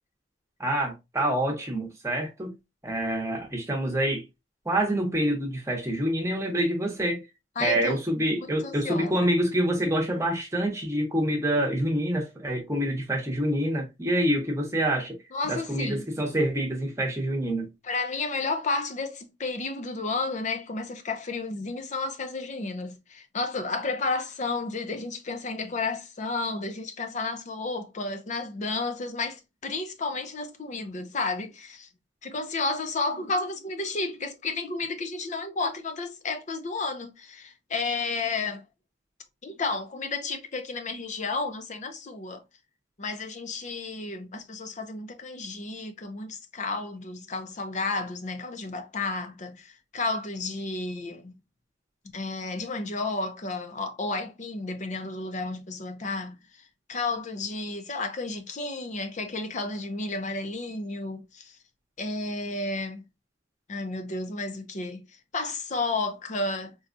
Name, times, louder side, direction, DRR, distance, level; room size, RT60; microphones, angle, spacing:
voice 1, 0.6-2.6 2.8-4.2 4.6-7.2 7.6-15.2 15.5-17.7, right 1 dB, 15° right, 0.9 m, -26 dB
voice 2, 7.6-8.0 8.3-9.2 15.3-16.0 17.8-31.9 32.2-38.6 39.4-42.4 43.0-51.3 52.1-56.6 56.9-61.6 62.0-63.0 63.7-65.0 65.3-66.8, left 3 dB, 40° left, 0.6 m, -32 dB
4.1 x 2.3 x 2.5 m
head